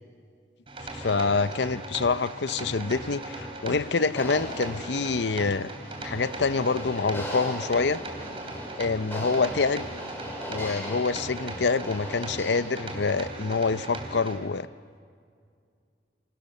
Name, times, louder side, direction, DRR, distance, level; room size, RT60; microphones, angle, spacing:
sound 1, 0.7-14.4, right 2 dB, 30° right, 3.1 m, -39 dB
voice 1, 0.9-5.7 6.0-8.0 8.8-9.9 10.5-14.7, left 4 dB, 75° left, 15 dB, 0.7 m, -26 dB
sound 2, 1.0-13.3, equal, 15° left, 5.7 m, -40 dB
28.5 x 26.5 x 6.8 m, 2.2 s
head